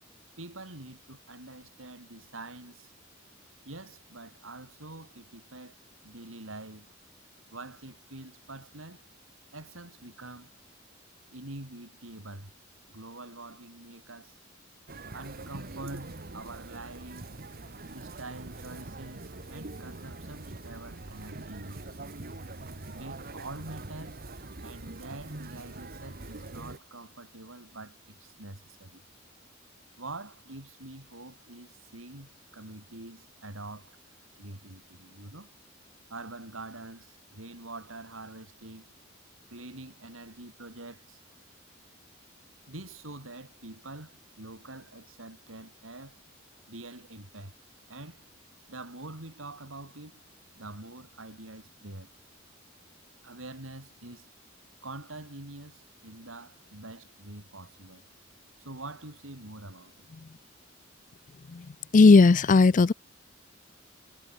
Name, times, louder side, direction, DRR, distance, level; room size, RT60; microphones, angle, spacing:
voice 1, 0.4-2.9 3.6-5.8 6.0-6.9 7.5-9.1 9.5-10.5 11.3-12.5 12.9-14.4 15.1-17.3 17.9-21.9 22.9-24.2 24.6-29.0 30.0-34.0 34.4-35.5 36.1-38.9 39.5-41.2 42.7-46.2 46.7-47.5 47.9-48.2 48.7-50.3 50.5-52.1 53.2-54.3 54.8-58.0 58.6-60.1, right 2 dB, 85° right, 5.0 m, -45 dB
sound 1, 14.9-26.8, right 2 dB, 50° right, 1.5 m, -43 dB
voice 2, 61.9-62.9, left 3 dB, 40° left, 0.5 m, -16 dB
head